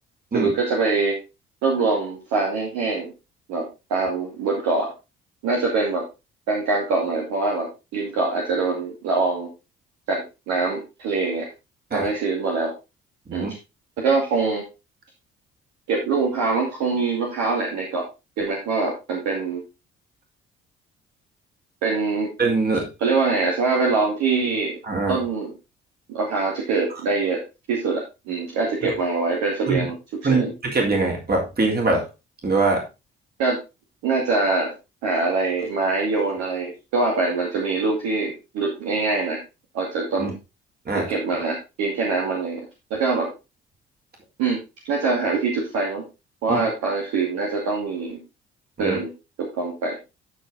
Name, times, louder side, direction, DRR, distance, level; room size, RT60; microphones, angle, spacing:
voice 1, 0.3-1.2 1.6-3.1 3.5-4.9 5.4-6.0 6.5-9.5 10.1-11.5 11.9-12.7 13.3-13.5 14.0-14.6 15.9-18.1 18.4-19.6 21.8-22.3 23.0-24.8 25.1-25.5 26.1-27.4 27.7-30.0 30.3-30.5 33.4-33.6 34.0-34.7 35.0-39.4 39.7-40.3 40.9-42.6 42.9-43.3 44.4-44.6 44.8-46.0 46.4-48.2 48.8-49.1 49.4-49.9, right 3 dB, 65° right, -2 dB, 2.4 m, -24 dB
voice 2, 22.4-22.9 24.9-25.2 28.8-28.9 29.7-29.9 30.2-32.1 32.4-32.8 40.2-40.3 40.9-41.1 46.5-46.6 48.8-49.0, right 3 dB, 30° right, 0 dB, 3.4 m, -22 dB
12.5 x 4.9 x 3.8 m, 0.27 s
figure-of-eight pair, 50°, 29 cm